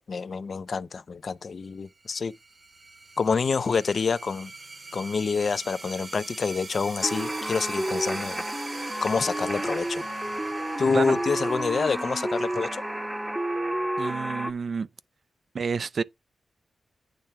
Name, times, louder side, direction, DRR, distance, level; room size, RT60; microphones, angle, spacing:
voice 1, 0.0-2.3 3.2-4.5 4.9-8.4 9.0-10.0 10.8-12.8, left 5 dB, 50° left, 0.5 m, -27 dB
sound 1, 1.9-13.1, right 3 dB, 35° right, 1.0 m, -43 dB
sound 2, 7.0-14.5, right 1 dB, 10° right, 0.9 m, -30 dB
voice 2, 14.0-14.9 15.5-16.0, right 5 dB, 55° right, 0.4 m, -29 dB
8.9 x 3.3 x 5.6 m
wide cardioid pair, 105°, 0 cm